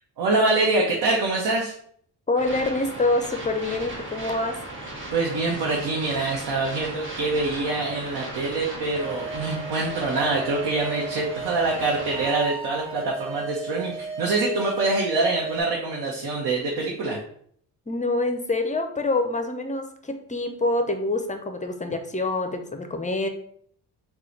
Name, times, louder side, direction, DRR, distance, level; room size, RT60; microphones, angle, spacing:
voice 1, 0.2-1.7 5.1-17.2, right 3 dB, 65° right, -2 dB, 1.0 m, -25 dB
voice 2, 2.3-4.6 17.9-23.3, left 2 dB, 20° left, 6 dB, 0.6 m, -26 dB
sound 1, 2.4-12.3, right 2 dB, 30° right, 1.5 m, -37 dB
sound 2, 8.9-15.6, right 3 dB, 15° right, 1.2 m, -35 dB
3.9 x 2.4 x 4.4 m, 0.63 s
cardioid pair, 80°, 41 cm